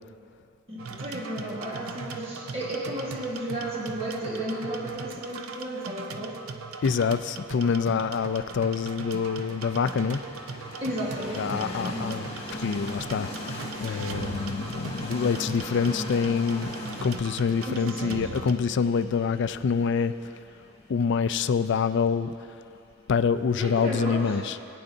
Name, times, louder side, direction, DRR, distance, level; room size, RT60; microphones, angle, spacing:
voice 1, 0.7-6.4 10.8-12.0 17.7-18.3 23.6-24.3, right 1 dB, 30° right, -4 dB, 1.6 m, -33 dB
sound 1, 0.8-18.5, right 5 dB, 85° right, 0.5 m, -39 dB
voice 2, 6.8-10.2 11.4-13.3 13.8-16.7 17.0-20.3 20.9-22.3 23.1-24.6, left 6 dB, 60° left, 12 dB, 0.4 m, -26 dB
Train, 7.7-23.5, left 2 dB, 30° left, 1.6 m, -40 dB
20.5 x 9.2 x 2.7 m, 2.5 s
head